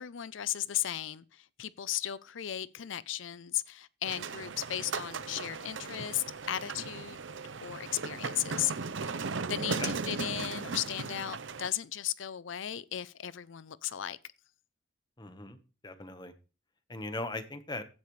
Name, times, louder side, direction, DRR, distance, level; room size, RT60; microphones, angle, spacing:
voice 1, 0.0-7.2 7.6-8.7 9.0-14.2, left 12 dB, 85° left, 0.5 m, -36 dB
sound 1, 4.1-11.7, right 4 dB, 80° right, 0.8 m, -37 dB
voice 2, 15.2-15.6 15.8-16.3 16.9-17.8, left 2 dB, 25° left, 1.2 m, -39 dB
15.5 x 10.5 x 3.2 m
head